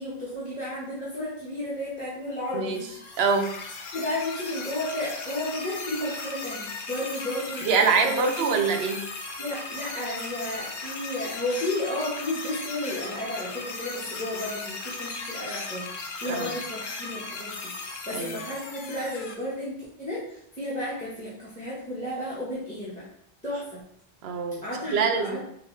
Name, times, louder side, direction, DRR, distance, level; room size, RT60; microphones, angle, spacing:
voice 1, 0.0-2.9 3.9-8.6 9.4-23.1 23.4-23.8 24.6-25.5, left 1 dB, 10° left, -8 dB, 1.0 m, -33 dB
sound 1, 2.7-19.3, left 3 dB, 55° left, 0.7 m, -37 dB
voice 2, 3.2-3.5 7.7-9.1 16.3-16.4 18.1-18.3 24.2-24.6 24.9-25.4, right 5 dB, 75° right, 5 dB, 0.8 m, -24 dB
4.7 x 2.6 x 3.2 m, 0.70 s
omnidirectional pair, 1.1 m